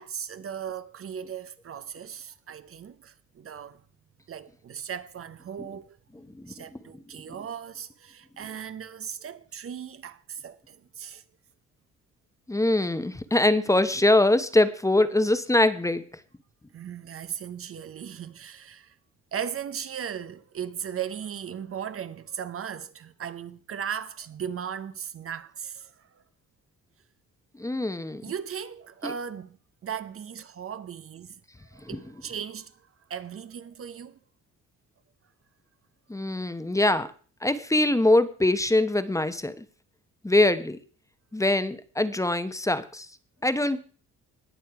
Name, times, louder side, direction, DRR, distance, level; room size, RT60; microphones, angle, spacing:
voice 1, 0.0-3.8 4.3-6.0 6.5-11.2 16.7-18.9 19.3-26.2 28.2-29.6 29.8-31.4 31.7-34.2, right 8 dB, 45° right, 0.7 m, -37 dB
voice 2, 6.3-6.8 12.5-16.0 27.6-28.2 29.0-29.1 31.9-32.0 36.1-37.1 37.4-39.6 40.2-40.8 41.3-43.1 43.4-43.9, left 2 dB, 10° left, 0.9 m, -23 dB
19.5 x 6.6 x 4.7 m
cardioid pair, 90°, 30 cm